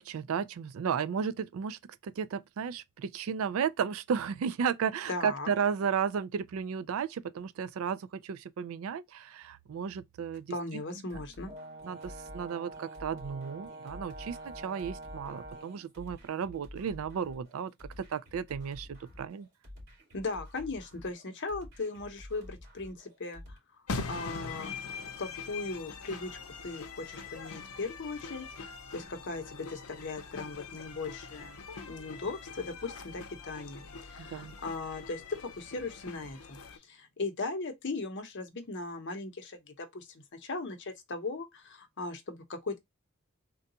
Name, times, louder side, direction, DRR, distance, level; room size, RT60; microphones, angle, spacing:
voice 1, 0.0-10.5 11.1-11.2 11.8-19.5 34.2-34.5, right 7 dB, 70° right, 0.3 m, -34 dB
voice 2, 5.1-5.5 10.5-11.5 20.1-23.6 24.0-24.7 25.0-31.6 31.9-36.6 36.9-42.8, left 3 dB, 55° left, 0.7 m, -38 dB
sound 1, 11.1-23.6, left 1 dB, 50° right, 2.4 m, -51 dB
Brass instrument, 11.5-15.9, right 2 dB, 30° right, 0.9 m, -46 dB
sound 2, 23.9-36.8, left 4 dB, 90° left, 0.6 m, -43 dB
3.7 x 2.2 x 2.7 m
head